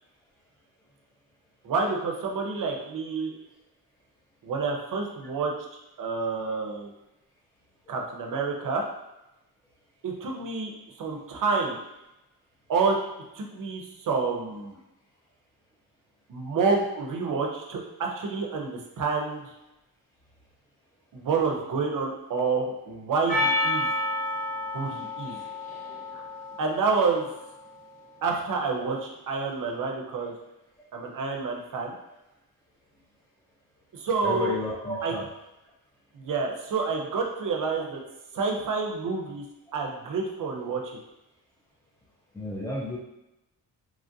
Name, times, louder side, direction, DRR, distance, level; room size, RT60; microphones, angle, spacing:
voice 1, 1.6-3.4 4.4-6.9 7.9-8.8 10.0-11.8 12.7-13.0 13.3-14.8 16.3-19.5 21.1-23.9 24.7-25.4 26.1-26.3 26.6-27.3 28.2-30.3 30.9-31.9 33.9-34.6 35.0-35.2 36.1-38.0 38.3-39.4 39.7-41.0, right 4 dB, 55° right, 1 dB, 0.6 m, -28 dB
Percussion, 23.3-27.8, left 1 dB, 70° left, 1.3 m, -30 dB
voice 2, 34.1-35.3 42.3-43.0, left 1 dB, 10° left, -5 dB, 0.3 m, -31 dB
3.0 x 2.4 x 2.6 m, 0.92 s
wide cardioid pair, 120°, 38 cm